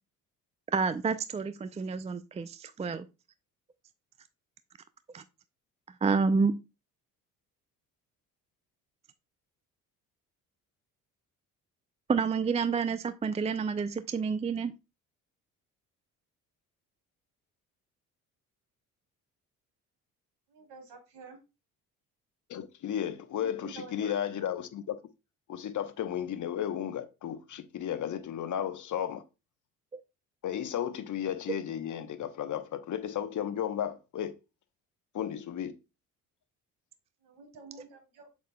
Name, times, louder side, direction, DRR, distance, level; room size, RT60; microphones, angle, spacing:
voice 1, 0.7-3.1 5.1-5.2 6.0-6.6 12.1-14.7 29.9-30.0, right 5 dB, 15° right, 0.4 m, -29 dB
voice 2, 20.5-21.4 23.3-24.2 37.2-38.3, right 3 dB, 65° right, 3.2 m, -48 dB
voice 3, 22.5-25.0 25.5-29.2 30.4-34.3 35.1-35.7, left 9 dB, 45° left, 0.9 m, -34 dB
7.4 x 7.0 x 2.2 m
hypercardioid pair, 50°, 42 cm